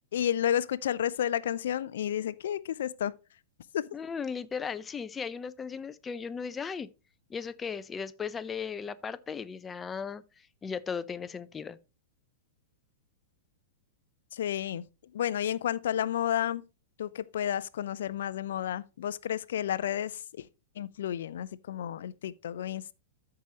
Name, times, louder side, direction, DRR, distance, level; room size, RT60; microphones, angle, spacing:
voice 1, 0.1-3.1 3.7-3.8 14.3-14.8 15.1-16.6 17.0-20.5 20.8-22.9, left 10 dB, 70° left, 0.5 m, -31 dB
voice 2, 3.9-6.9 7.3-11.8, left 6 dB, 20° left, 0.5 m, -37 dB
13.5 x 4.8 x 2.9 m
hypercardioid pair, 105°, 0 cm